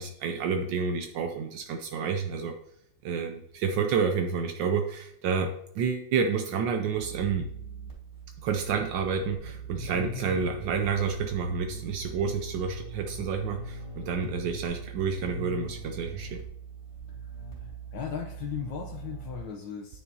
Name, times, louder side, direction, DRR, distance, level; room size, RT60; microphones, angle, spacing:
voice 1, 0.0-2.5 3.0-7.5 8.4-16.4, right 6 dB, 80° right, 5 dB, 1.3 m, -29 dB
sound 1, 7.0-19.4, right 4 dB, 15° left, 2.4 m, -41 dB
voice 2, 17.6-20.0, left 8 dB, 80° left, 1 dB, 1.5 m, -37 dB
9.3 x 5.8 x 2.7 m, 0.72 s
omnidirectional pair, 2.0 m